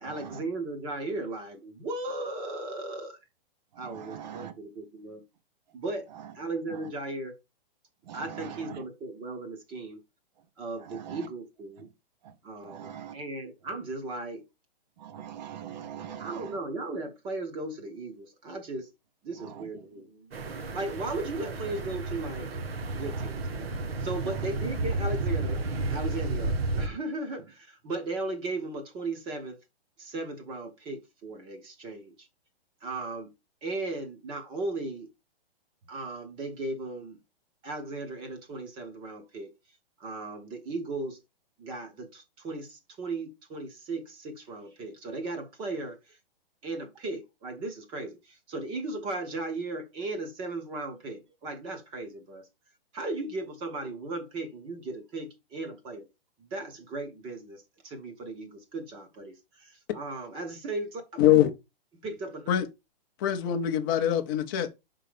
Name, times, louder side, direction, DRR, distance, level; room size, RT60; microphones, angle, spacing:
voice 1, 0.0-3.2 3.8-5.2 5.7-6.1 6.3-7.4 8.1-10.0 10.6-11.9 12.4-14.4 16.2-18.9 19.2-22.5 22.9-23.7 24.0-25.6 25.9-29.6 30.0-32.3 32.8-33.3 33.6-35.1 35.9-37.2 37.6-39.5 40.0-41.2 41.6-46.2 46.6-52.5 52.9-56.1 56.4-61.2 62.0-62.5, right 2 dB, 15° right, 0.9 m, -36 dB
voice 2, 3.8-4.5 8.1-8.2 11.1-11.2 12.7-13.1 15.0-16.3, right 9 dB, 45° right, 1.0 m, -41 dB
sound 1, 20.3-26.9, right 2 dB, 85° right, 1.4 m, -32 dB
voice 3, 61.2-61.5 62.5-62.6 63.2-64.7, left 11 dB, 20° left, 0.6 m, -23 dB
5.6 x 3.8 x 5.0 m
hypercardioid pair, 165°, 30 cm